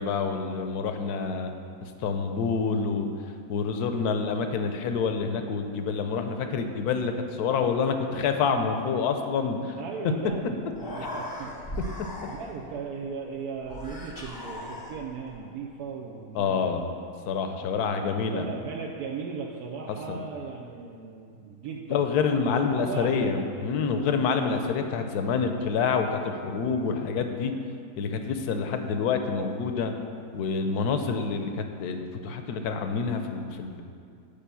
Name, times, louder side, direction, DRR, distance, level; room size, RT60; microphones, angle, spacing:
voice 1, 0.0-1.5 1.8-3.1 3.5-9.7 16.3-16.9 17.3-18.5 20.1-20.2 21.9-27.5 28.0-29.9 30.3-33.8, left 5 dB, 75° left, 6 dB, 1.2 m, -27 dB
voice 2, 9.7-11.8 12.3-16.8 17.7-22.1 22.5-23.4, right 5 dB, 75° right, -1 dB, 1.1 m, -37 dB
Human voice, 10.3-10.4 10.6-12.7 13.6-15.3, left 1 dB, 15° left, 0.8 m, -38 dB
6.9 x 5.2 x 6.8 m, 2.4 s
omnidirectional pair, 1.7 m